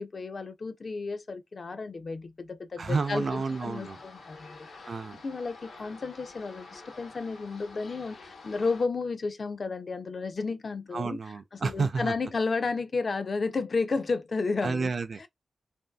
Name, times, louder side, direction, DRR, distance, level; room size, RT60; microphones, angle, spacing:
voice 1, 0.0-4.9 5.2-11.2 11.6-14.9, left 4 dB, 45° left, 0.4 m, -32 dB
voice 2, 2.8-4.0 4.9-5.2 10.9-12.1 14.6-15.3, right 4 dB, 50° right, 0.5 m, -30 dB
sound 1, 2.9-8.9, left 3 dB, 80° left, 1.0 m, -48 dB
3.0 x 2.6 x 2.2 m
wide cardioid pair, 135°, 0 cm